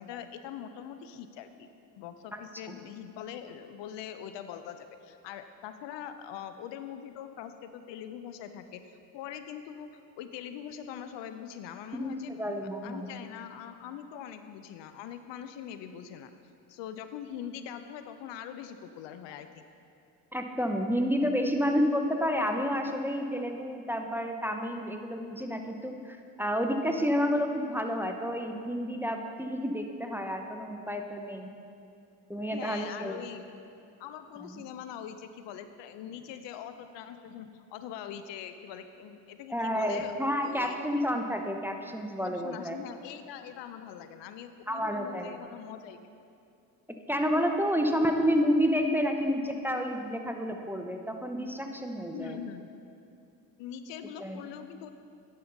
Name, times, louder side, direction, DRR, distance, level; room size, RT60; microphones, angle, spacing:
voice 1, 0.0-1.7 2.0-8.9 9.1-9.9 10.2-12.4 12.8-16.3 16.7-19.6 32.5-33.4 34.0-40.1 40.4-41.0 42.2-46.0 47.8-47.9 52.1-52.7 53.6-54.9, left 9 dB, 70° left, 9 dB, 0.6 m, -42 dB
voice 2, 11.9-13.1 20.3-31.5 32.3-33.2 34.4-34.5 39.5-42.8 44.7-45.3 47.1-52.4 54.2-54.4, equal, 5° right, 4 dB, 0.6 m, -30 dB
11.0 x 5.6 x 3.9 m, 2.6 s
hypercardioid pair, 50°, 46 cm